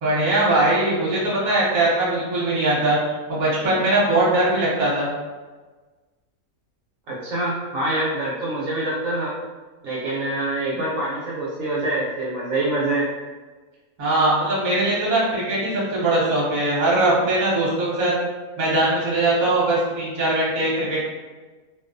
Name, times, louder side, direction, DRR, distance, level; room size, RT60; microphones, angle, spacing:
voice 1, 0.0-3.0 3.3-5.1 14.0-18.1 18.6-21.1, right 2 dB, 40° right, -7 dB, 0.8 m, -21 dB
voice 2, 7.1-9.4 9.8-13.1, right 2 dB, 70° right, -7 dB, 0.9 m, -25 dB
2.3 x 2.2 x 2.5 m, 1.3 s
omnidirectional pair, 1.6 m